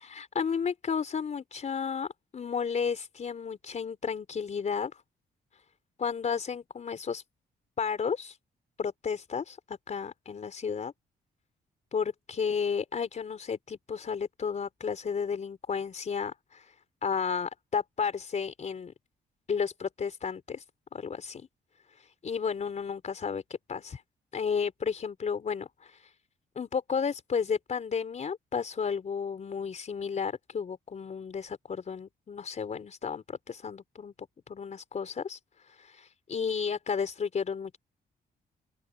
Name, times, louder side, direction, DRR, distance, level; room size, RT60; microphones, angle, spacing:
voice 1, 0.0-4.9 6.0-7.2 7.8-8.4 8.8-10.9 11.9-16.7 17.0-18.9 19.5-20.6 20.9-21.5 21.9-23.4 23.7-24.0 24.3-26.1 26.6-34.1 34.5-37.8, left 6 dB, 45° left, 4.3 m, -33 dB
open air
cardioid pair, 90°, 17 cm